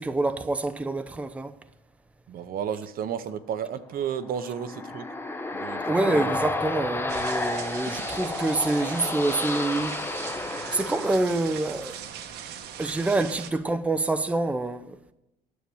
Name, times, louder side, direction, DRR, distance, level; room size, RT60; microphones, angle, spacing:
voice 1, 0.0-1.6 5.9-10.2 10.7-12.0 12.8-15.0, right 2 dB, 10° right, 0.6 m, -26 dB
voice 2, 2.3-5.1 5.5-6.3, right 8 dB, 60° right, 0.9 m, -32 dB
sound 1, 4.2-11.8, left 2 dB, 15° left, 0.9 m, -31 dB
sound 2, 7.1-13.5, right 8 dB, 80° right, 1.2 m, -40 dB
10.0 x 7.6 x 7.0 m
cardioid pair, 110°, 17 cm